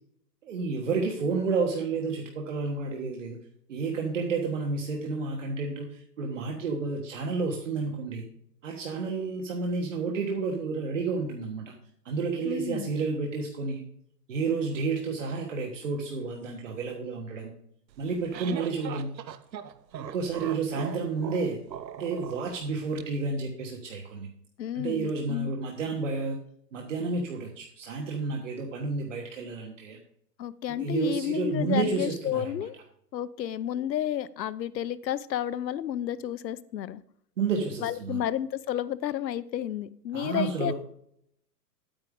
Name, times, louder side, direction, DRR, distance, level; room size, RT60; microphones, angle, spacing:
voice 1, 0.4-3.4 3.7-8.2 8.6-11.7 12.0-13.8 14.3-17.5 18.0-19.1 20.0-21.6 22.0-24.3 24.7-26.4 26.7-30.0 30.8-32.5 37.4-38.2 40.1-40.7, right 4 dB, 45° right, 1 dB, 1.4 m, -30 dB
voice 2, 12.4-12.9 24.6-25.5 30.4-32.7 33.1-37.0 37.8-40.7, left 11 dB, 80° left, 18 dB, 0.8 m, -31 dB
sound 1, 17.9-23.0, right 9 dB, 85° right, 1.0 m, -40 dB
9.7 x 9.0 x 3.7 m, 0.70 s
hypercardioid pair, 175°, 50 cm